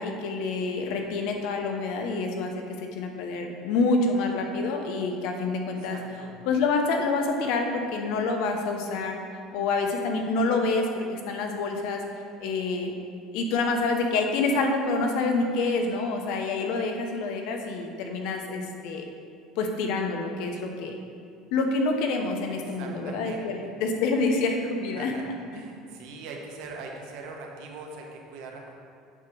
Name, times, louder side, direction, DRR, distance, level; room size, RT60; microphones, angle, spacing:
voice 1, 0.0-6.0 6.5-9.2 9.5-12.0 12.4-12.9 13.3-19.0 19.6-21.0 21.5-25.1, left 3 dB, 65° left, 3 dB, 0.8 m, -27 dB
voice 2, 5.8-6.4 22.6-23.7 24.9-25.3 25.5-28.7, right 3 dB, 75° right, 0 dB, 1.1 m, -42 dB
8.0 x 3.0 x 6.1 m, 2.3 s
cardioid pair, 145°, 0 cm